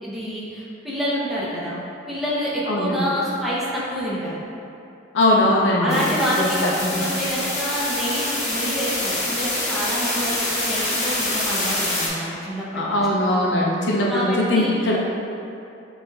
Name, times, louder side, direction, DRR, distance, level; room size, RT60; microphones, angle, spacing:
voice 1, 0.0-4.4 5.8-6.6 6.9-13.0 14.1-14.9, equal, ahead, -8 dB, 0.7 m, -27 dB
voice 2, 2.7-3.0 5.1-6.1 6.4-6.7 12.7-15.0, left 1 dB, 60° left, -3 dB, 0.5 m, -20 dB
sound 1, 5.9-12.1, left 1 dB, 35° left, 1.0 m, -26 dB
6.0 x 3.1 x 2.3 m, 2.7 s
head